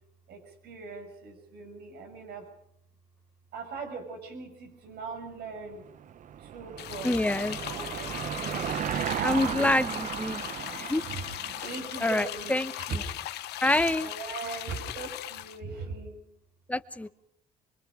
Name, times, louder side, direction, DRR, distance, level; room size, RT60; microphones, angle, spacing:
voice 1, 0.3-2.5 3.5-5.8 6.4-7.2 7.6-9.5 9.9-13.3 13.7-16.2, right 4 dB, 70° right, 5 dB, 6.7 m, -41 dB
Car passing by / Engine, 5.8-12.6, right 9 dB, 50° right, 0.8 m, -35 dB
sound 1, 6.8-15.6, left 14 dB, 80° left, 1.2 m, -38 dB
voice 2, 7.0-7.6 9.2-10.4 10.8-11.0 12.0-12.7 13.6-14.1 16.7-17.1, left 1 dB, 10° left, 12 dB, 1.0 m, -26 dB
25.5 x 24.0 x 5.1 m, 0.73 s
cardioid pair, 110°, 17 cm